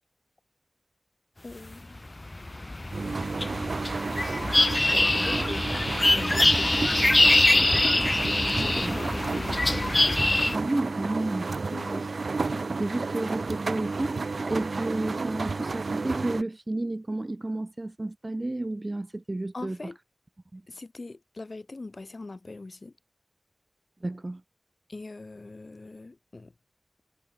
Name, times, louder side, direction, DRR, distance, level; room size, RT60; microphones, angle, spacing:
voice 1, 1.4-2.1 5.1-5.7 6.1-7.4 8.4-9.7 11.7-12.1 19.5-20.0 20.7-22.9 24.9-26.5, left 3 dB, 60° left, 4.9 m, -41 dB
sound 1, 1.7-10.6, left 2 dB, 40° left, 0.4 m, -24 dB
sound 2, 2.9-16.4, right 4 dB, 85° right, 0.8 m, -31 dB
voice 2, 8.5-8.9 10.5-11.5 12.0-12.1 12.5-19.8 20.5-20.6 24.0-24.4, right 2 dB, 40° right, 0.5 m, -32 dB
wide cardioid pair, 50°, 0 cm